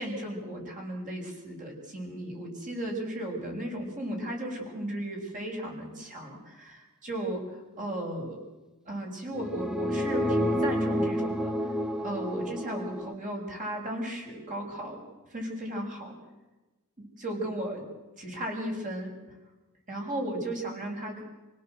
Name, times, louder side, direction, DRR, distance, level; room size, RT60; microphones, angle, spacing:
voice 1, 0.0-7.4 7.8-8.4 8.8-11.5 12.0-15.0 15.3-16.1 17.0-17.9 18.2-19.1 19.9-21.2, right 1 dB, 35° right, 1 dB, 6.7 m, -35 dB
sound 1, 9.3-13.1, equal, 5° right, 0.9 m, -29 dB
27.0 x 17.5 x 7.9 m, 1.1 s
head